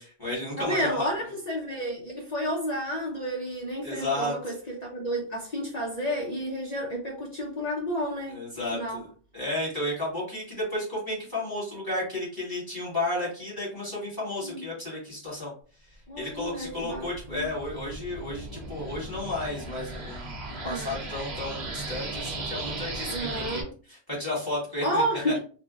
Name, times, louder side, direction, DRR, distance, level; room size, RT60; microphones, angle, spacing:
voice 1, 0.0-1.1 3.8-4.3 8.3-9.1 9.3-15.5 16.2-23.6 23.9-25.0, left 1 dB, 20° left, 1.4 m, -33 dB
voice 2, 0.6-8.4 8.7-9.0 14.4-14.7 16.1-17.5 20.6-21.0 23.1-23.7 24.8-25.4, equal, 45° left, 0.7 m, -31 dB
sound 1, 16.5-23.6, right 2 dB, 80° right, 1.0 m, -37 dB
3.3 x 2.1 x 2.4 m
omnidirectional pair, 1.1 m